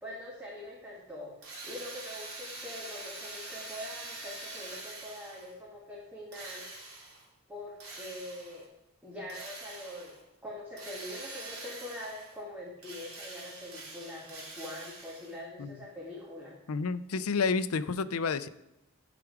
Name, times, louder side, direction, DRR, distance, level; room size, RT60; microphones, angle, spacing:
voice 1, 0.0-6.7 7.5-8.7 9.0-10.1 10.4-16.6, left 1 dB, 10° right, -6 dB, 1.6 m, -43 dB
Drill, 1.4-5.6 6.3-7.3 7.8-8.7 9.3-10.2 10.8-12.4 12.8-15.4, right 2 dB, 80° right, 3.3 m, -45 dB
voice 2, 16.7-18.5, left 4 dB, 75° left, 13 dB, 0.5 m, -30 dB
14.5 x 5.0 x 4.8 m, 0.87 s
head